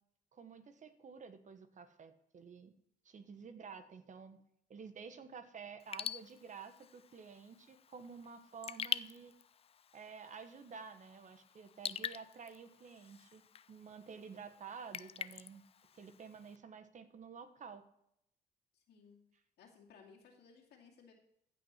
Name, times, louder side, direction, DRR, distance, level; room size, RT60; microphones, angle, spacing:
voice 1, 0.3-2.7 3.0-4.4 4.7-9.3 9.9-15.6 15.9-17.8, right 6 dB, 50° right, 9 dB, 1.3 m, -51 dB
Raindrop / Drip, 5.8-16.6, left 8 dB, 35° left, 0.4 m, -46 dB
voice 2, 18.7-19.3 19.6-21.1, left 5 dB, 85° left, 0 dB, 2.4 m, -61 dB
15.0 x 5.9 x 4.4 m, 0.74 s
cardioid pair, 85°, 16 cm